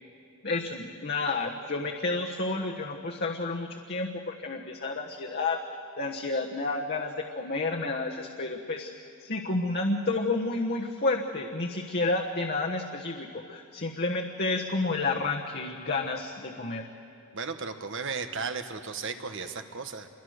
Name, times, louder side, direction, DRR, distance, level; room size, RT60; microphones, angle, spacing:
voice 1, 0.4-5.6 6.0-8.9 9.2-16.9, left 3 dB, 45° left, 0 dB, 1.4 m, -30 dB
voice 2, 17.3-20.1, right 5 dB, 60° right, 8 dB, 1.4 m, -35 dB
27.5 x 23.0 x 6.6 m, 2.7 s
head